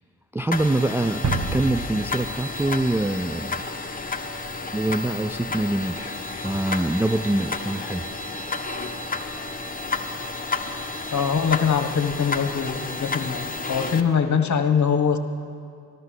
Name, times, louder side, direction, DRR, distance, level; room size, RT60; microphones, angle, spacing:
voice 1, 0.3-3.6 4.7-8.1, right 2 dB, 5° right, 9 dB, 0.4 m, -25 dB
sound 1, 0.5-14.0, left 3 dB, 20° left, 1.3 m, -31 dB
sound 2, 1.2-3.7, right 4 dB, 45° right, 1.3 m, -30 dB
voice 2, 11.1-15.2, left 6 dB, 45° left, 7 dB, 1.4 m, -23 dB
15.0 x 12.0 x 6.4 m, 2.4 s
hypercardioid pair, 40°, 40 cm